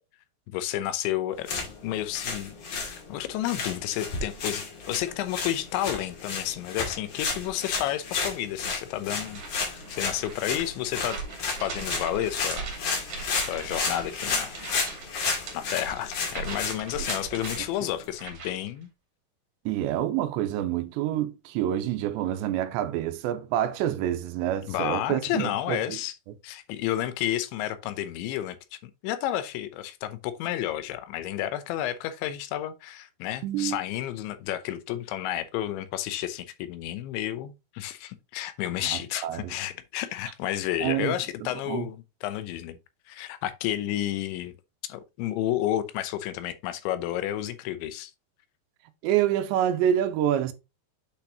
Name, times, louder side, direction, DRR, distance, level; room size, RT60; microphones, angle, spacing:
voice 1, 0.5-11.2 11.6-12.7 13.3-14.5 15.5-18.9 24.7-26.1 26.4-42.8 43.1-44.5 44.8-48.1, left 13 dB, 85° left, 3.1 m, -31 dB
sound 1, 1.3-18.1, left 4 dB, 50° left, 3.3 m, -33 dB
sound 2, 9.2-18.7, right 4 dB, 45° right, 3.5 m, -40 dB
voice 2, 19.7-26.0 33.4-33.8 38.8-39.6 40.8-41.2 41.7-41.9 49.0-50.5, right 11 dB, 85° right, 2.9 m, -27 dB
8.1 x 6.0 x 2.9 m
omnidirectional pair, 5.2 m